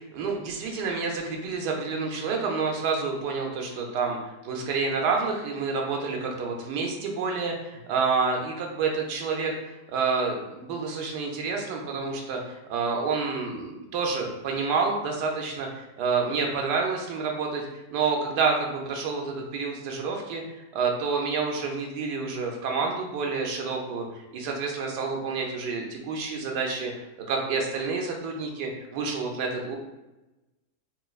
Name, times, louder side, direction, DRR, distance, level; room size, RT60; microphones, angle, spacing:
voice 1, 0.0-4.2 4.4-24.0 24.3-26.9 27.3-29.8, right 4 dB, 85° right, 1 dB, 1.2 m, -28 dB
4.2 x 2.3 x 2.3 m, 1.0 s
omnidirectional pair, 1.8 m